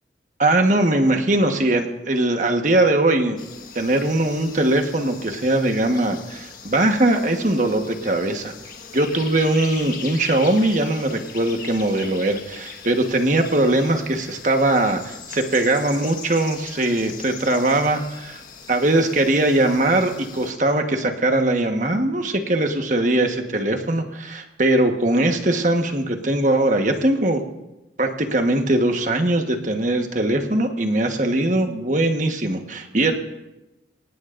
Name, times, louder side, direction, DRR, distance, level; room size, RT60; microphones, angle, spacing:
voice 1, 0.4-3.4 3.7-8.5 8.9-18.4 18.7-27.4 28.0-33.1, right 1 dB, 45° right, 4 dB, 1.4 m, -20 dB
sound 1, 3.4-20.5, left 6 dB, 50° left, 1.6 m, -40 dB
24.0 x 18.5 x 2.6 m, 1.0 s
head